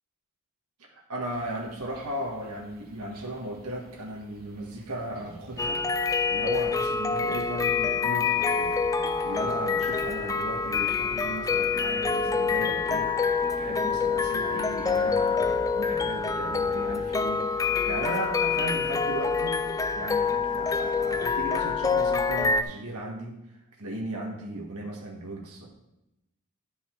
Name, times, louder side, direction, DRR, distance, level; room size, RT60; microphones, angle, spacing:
voice 1, 0.9-5.8 6.3-8.8 9.2-19.6 19.9-23.4 23.8-25.7, right 1 dB, 80° right, 0 dB, 1.6 m, -36 dB
sound 1, 1.2-19.4, equal, 45° right, 1.8 m, -54 dB
sound 2, 5.6-22.6, left 5 dB, 15° left, 0.3 m, -26 dB
11.0 x 5.5 x 4.6 m, 0.91 s
head